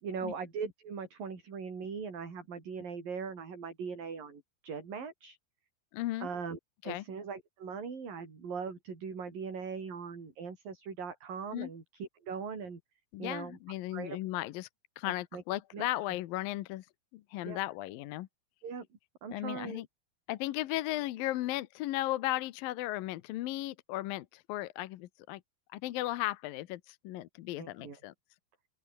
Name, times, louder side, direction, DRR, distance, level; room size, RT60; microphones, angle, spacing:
voice 1, 0.0-5.4 6.2-6.6 6.8-12.8 13.2-13.6 13.9-14.2 15.0-15.4 15.7-15.9 17.5-17.6 18.6-18.9 19.2-19.8 27.6-28.0, right 5 dB, 60° right, 7.0 m, -40 dB
voice 2, 5.9-6.3 6.8-7.0 11.5-11.7 13.1-14.7 15.0-16.9 17.1-18.3 19.3-19.9 20.3-25.4 25.7-28.1, left 16 dB, 70° left, 2.4 m, -36 dB
open air
omnidirectional pair, 4.7 m